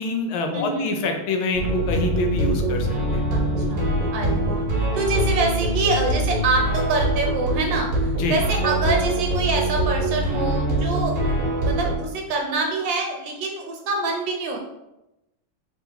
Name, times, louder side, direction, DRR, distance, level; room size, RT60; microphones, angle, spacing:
voice 1, 0.0-3.2 8.1-8.4, left 3 dB, 75° left, 4 dB, 1.4 m, -26 dB
voice 2, 0.5-1.0 3.3-11.1 11.4-14.6, right 3 dB, 70° right, 1 dB, 1.3 m, -26 dB
sound 1, 1.5-12.0, right 1 dB, 40° right, 0.9 m, -23 dB
4.7 x 3.9 x 2.7 m, 0.93 s
omnidirectional pair, 2.3 m